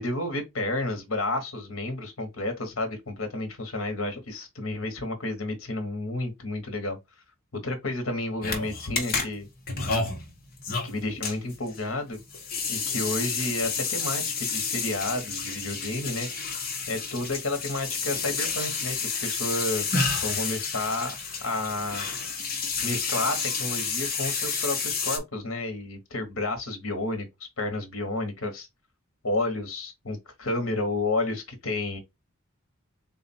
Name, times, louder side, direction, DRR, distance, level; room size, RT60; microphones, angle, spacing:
voice 1, 0.0-7.0 7.6-9.5 10.8-12.2 12.7-16.3 16.9-21.1 21.4-22.1 22.8-27.3 27.6-28.7 29.2-32.0, left 2 dB, 65° left, 1.1 m, -31 dB
sound 1, 8.4-25.2, left 4 dB, 45° left, 1.0 m, -30 dB
3.8 x 2.4 x 4.2 m
head